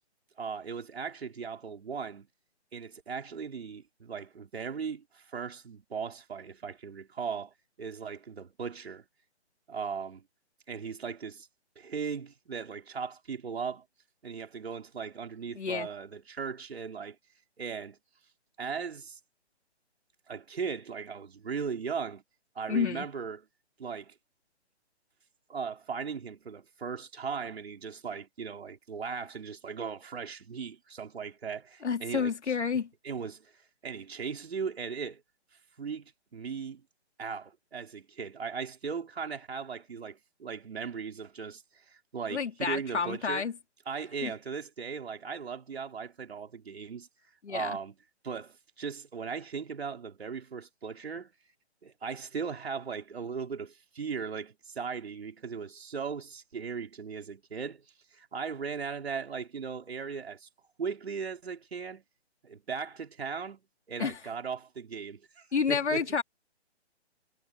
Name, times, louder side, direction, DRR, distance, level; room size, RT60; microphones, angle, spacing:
voice 1, 0.4-2.3 2.7-9.1 9.7-10.2 10.7-11.5 11.8-13.8 14.2-17.2 17.6-18.0 18.6-19.2 20.3-22.2 22.5-23.4 23.8-24.1 25.5-32.3 33.0-33.5 33.8-35.2 35.8-36.8 37.2-43.4 43.9-47.1 47.5-48.0 48.2-51.3 51.8-57.8 58.1-60.5 60.8-62.0 62.4-66.2, right 6 dB, 65° right, 4.9 m, -38 dB
voice 2, 15.5-15.9 22.7-23.1 31.8-32.9 42.3-43.6 44.2-44.3 47.4-47.8 64.0-64.2 65.5-66.2, left 6 dB, 80° left, 3.2 m, -30 dB
hypercardioid pair, 170°, 34 cm